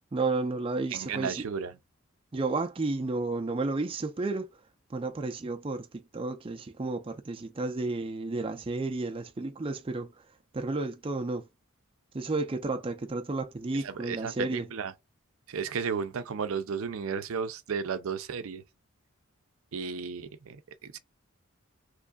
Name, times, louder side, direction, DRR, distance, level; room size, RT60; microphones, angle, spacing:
voice 1, 0.1-1.5 2.3-4.5 4.9-10.1 10.5-11.4 12.1-14.7, right 3 dB, 25° right, 0.4 m, -32 dB
voice 2, 0.9-1.8 13.7-14.9 15.5-18.6 19.7-21.0, right 6 dB, 75° right, 0.5 m, -34 dB
3.5 x 3.1 x 2.3 m
head